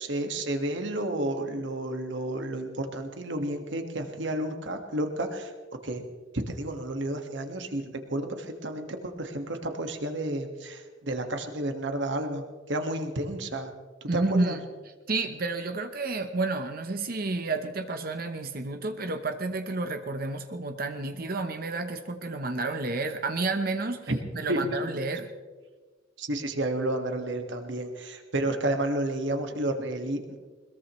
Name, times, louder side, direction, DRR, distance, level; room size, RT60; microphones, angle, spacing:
voice 1, 0.0-5.5 5.8-6.0 6.3-12.4 12.7-13.7 14.1-14.6 24.1-24.2 24.5-24.8 26.2-30.4, right 1 dB, 70° right, 5 dB, 1.8 m, -31 dB
voice 2, 14.1-14.6 15.1-25.3, right 3 dB, 50° right, 7 dB, 0.9 m, -30 dB
21.5 x 21.5 x 3.2 m, 1.4 s
head